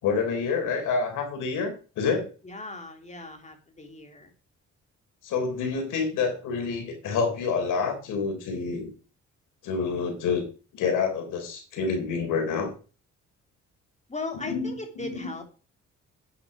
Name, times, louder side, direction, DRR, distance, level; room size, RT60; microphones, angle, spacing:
voice 1, 0.0-2.3 5.2-8.9 9.6-10.4 10.7-12.7 14.3-15.2, left 5 dB, 85° left, 5 dB, 4.0 m, -28 dB
voice 2, 2.4-4.3 14.1-15.4, left 3 dB, 25° left, 4 dB, 3.1 m, -37 dB
9.7 x 8.8 x 4.9 m, 0.36 s
cardioid pair, 90°, 30 cm